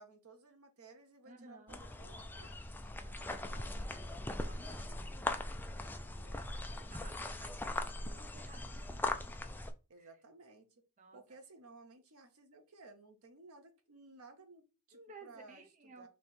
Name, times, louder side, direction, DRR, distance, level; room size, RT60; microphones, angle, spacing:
voice 1, 0.0-2.9 9.9-10.7 11.1-15.6 16.0-16.1, right 3 dB, 90° right, 6 dB, 0.9 m, -57 dB
voice 2, 1.2-1.8 3.0-6.5 6.9-9.3 10.0-10.2 11.0-11.2 14.9-16.1, right 3 dB, 35° right, 5 dB, 0.7 m, -57 dB
sound 1, 1.7-9.7, left 2 dB, 10° left, 0.3 m, -40 dB
3.4 x 3.0 x 4.3 m, 0.31 s
head